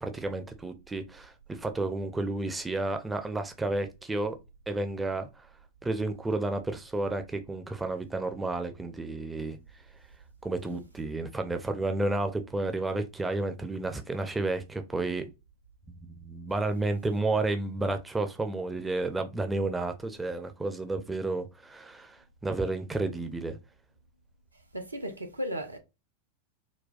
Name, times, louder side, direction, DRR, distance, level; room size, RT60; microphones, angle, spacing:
voice 1, 0.0-4.4 4.7-5.5 5.8-9.6 10.4-15.2 16.0-23.6, right 2 dB, 10° right, 0.4 m, -31 dB
voice 2, 24.7-25.8, equal, 85° right, 0.5 m, -35 dB
4.0 x 2.2 x 2.4 m
figure-of-eight pair, 90°, 0 cm